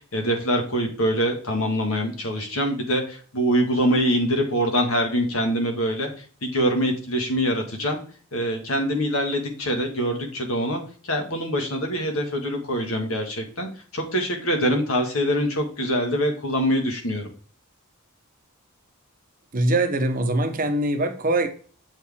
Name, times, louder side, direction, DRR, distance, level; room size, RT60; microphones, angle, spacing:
voice 1, 0.0-6.1 6.4-8.0 8.3-17.3, equal, 75° left, 3 dB, 1.7 m, -24 dB
voice 2, 19.5-21.5, right 2 dB, 40° right, 7 dB, 0.8 m, -22 dB
7.8 x 4.5 x 3.5 m, 0.41 s
head